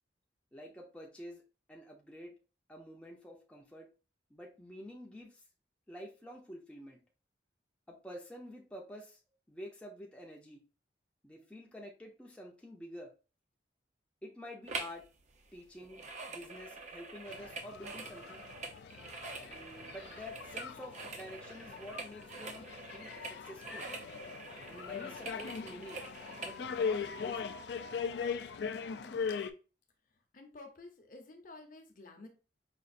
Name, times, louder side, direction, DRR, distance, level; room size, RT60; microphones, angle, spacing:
voice 1, 0.5-1.4 1.7-2.3 2.7-3.9 4.3-5.4 5.9-7.0 7.9-9.2 9.5-10.6 11.2-13.1 14.2-15.0 15.5-16.0 16.3-18.4 19.5-22.7 22.9-23.9 24.7-26.0 26.4-27.5, equal, 5° left, -2 dB, 0.5 m, -49 dB
sound 1, 14.7-15.0 15.3-26.6 27.1-27.2, right 3 dB, 40° right, 0.5 m, -45 dB
sound 2, 17.3-29.5, left 6 dB, 65° left, 0.3 m, -40 dB
voice 2, 28.9-29.4 30.1-32.3, left 2 dB, 45° left, 4 dB, 0.7 m, -53 dB
5.0 x 2.4 x 2.5 m, 0.34 s
head